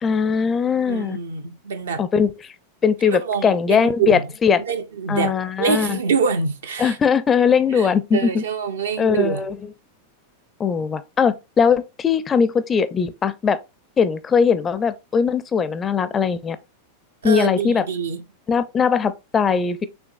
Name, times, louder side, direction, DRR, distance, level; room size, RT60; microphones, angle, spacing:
voice 1, 0.0-1.2 2.0-2.5 2.8-4.6 5.1-6.0 6.8-8.4 9.0-9.6 10.6-13.6 14.0-16.6 17.2-17.8 18.5-19.9, left 6 dB, 20° left, 0.4 m, -20 dB
voice 2, 0.9-2.0 3.1-4.3 4.7-7.0 7.7-9.4 17.2-18.2, right 6 dB, 65° right, 0.7 m, -25 dB
5.9 x 3.3 x 2.5 m
figure-of-eight pair, 90°, 0 cm